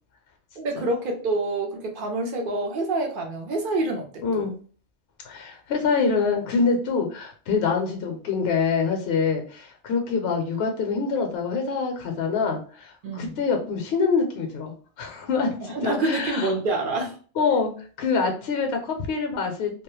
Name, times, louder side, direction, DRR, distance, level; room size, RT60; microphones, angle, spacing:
voice 1, 0.6-4.4 13.0-13.4 15.6-17.1, right 2 dB, 60° right, 2 dB, 0.6 m, -27 dB
voice 2, 4.2-4.5 5.2-16.5 17.4-19.8, left 5 dB, 70° left, 3 dB, 0.8 m, -25 dB
2.2 x 2.0 x 3.0 m, 0.41 s
omnidirectional pair, 1.1 m